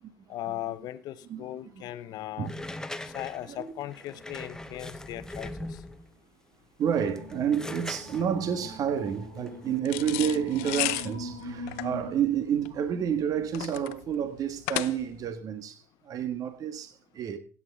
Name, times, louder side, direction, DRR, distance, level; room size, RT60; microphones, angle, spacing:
voice 1, 0.3-2.5 3.1-5.8, left 14 dB, 55° left, 0.9 m, -38 dB
sound 1, 2.4-6.1 6.8-9.8, left 1 dB, 10° left, 1.0 m, -41 dB
voice 2, 3.3-3.7 6.8-17.4, right 8 dB, 50° right, 1.5 m, -30 dB
sound 2, 6.8-12.1, equal, 90° right, 6.4 m, -42 dB
sound 3, 9.9-15.3, left 22 dB, 75° left, 0.5 m, -34 dB
16.0 x 8.5 x 3.7 m
hypercardioid pair, 75°, 8 cm